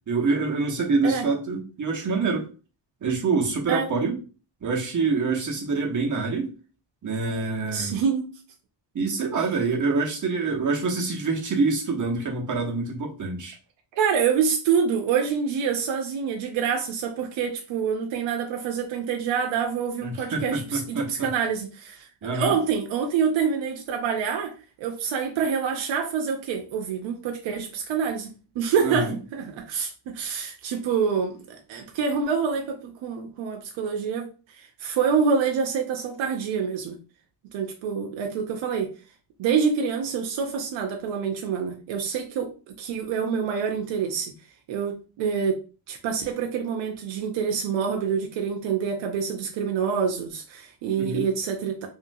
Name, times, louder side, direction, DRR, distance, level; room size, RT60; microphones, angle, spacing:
voice 1, 0.1-2.5 3.0-4.2 4.6-6.5 7.0-7.9 8.9-13.5 20.0-21.3 22.2-22.6 28.8-29.1 51.0-51.3, right 4 dB, 40° right, 0 dB, 1.0 m, -26 dB
voice 2, 7.7-8.3 13.9-24.5 24.8-37.0 37.5-38.9 39.4-44.3 44.7-45.6 45.9-51.9, right 6 dB, 85° right, 3 dB, 0.6 m, -26 dB
3.1 x 2.7 x 2.6 m, 0.35 s
cardioid pair, 95°, 45 cm